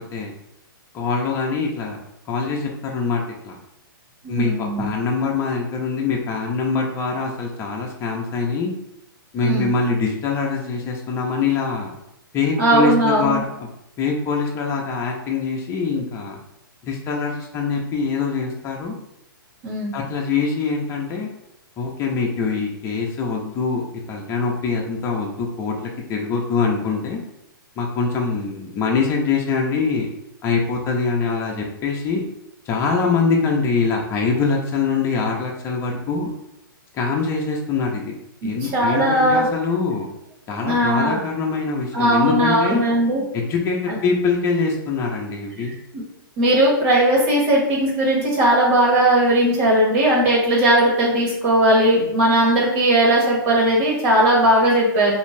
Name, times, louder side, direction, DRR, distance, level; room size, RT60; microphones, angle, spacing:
voice 1, 0.9-2.0 2.3-3.6 4.3-8.7 9.3-11.9 12.3-13.5 14.0-16.4 16.8-19.0 19.9-21.3 21.8-27.2 27.8-30.1 30.4-32.2 32.7-36.3 36.9-38.1 38.4-40.1 40.5-42.8 43.3-45.7, left 4 dB, 20° left, -1 dB, 0.5 m, -23 dB
voice 2, 4.2-4.9 9.4-9.7 12.6-13.4 19.6-19.9 38.4-39.5 40.6-41.2 41.9-43.2 43.9-44.0 45.9-46.0 46.4-55.1, right 1 dB, 40° right, -3 dB, 1.3 m, -18 dB
2.6 x 2.3 x 3.1 m, 0.83 s
hypercardioid pair, 130°, 12 cm